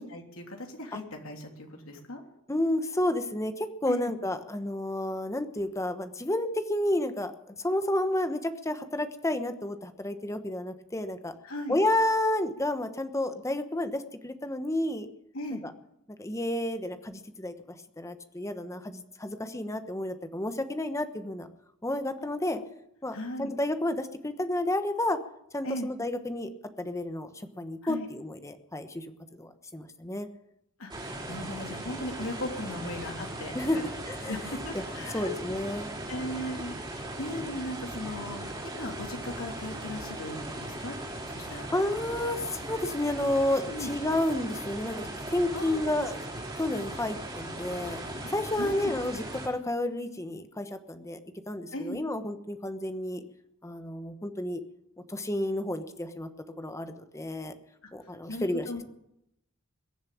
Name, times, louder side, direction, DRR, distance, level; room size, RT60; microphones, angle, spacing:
voice 1, 0.0-2.2 3.9-4.1 11.4-11.8 15.3-15.6 22.3-22.7 23.1-23.5 25.6-25.9 27.8-28.1 30.8-33.9 34.3-35.3 36.1-40.9 41.3-41.7 43.7-43.9 45.5-45.8 48.2-48.3 48.6-48.9 51.7-52.0 58.3-58.8, left 1 dB, 85° left, 2 dB, 3.2 m, -37 dB
voice 2, 2.5-11.3 11.7-15.1 15.5-15.7 16.2-17.5 18.0-21.5 21.8-22.6 23.0-25.2 25.5-26.5 26.8-29.1 29.3-30.3 33.5-33.8 34.1-34.3 34.7-34.8 35.1-35.9 41.7-46.2 46.6-48.0 48.3-51.2 51.5-53.2 53.6-54.6 55.1-56.3 56.6-57.5 57.9-58.8, left 1 dB, 15° left, 9 dB, 1.1 m, -31 dB
sound 1, 30.9-49.5, right 1 dB, 20° right, 4.1 m, -38 dB
22.0 x 7.4 x 8.6 m, 0.80 s
head